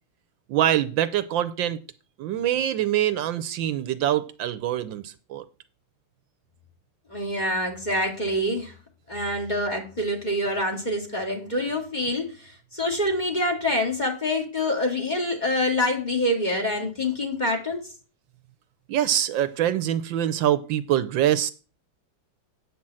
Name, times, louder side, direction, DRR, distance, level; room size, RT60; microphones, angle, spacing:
voice 1, 0.5-1.8 2.2-5.4 9.2-9.4 18.9-21.5, right 11 dB, 75° right, 13 dB, 1.3 m, -24 dB
voice 2, 7.1-8.7 9.1-17.8, left 1 dB, 20° left, 2 dB, 2.0 m, -26 dB
9.0 x 5.8 x 7.5 m, 0.35 s
omnidirectional pair, 2.2 m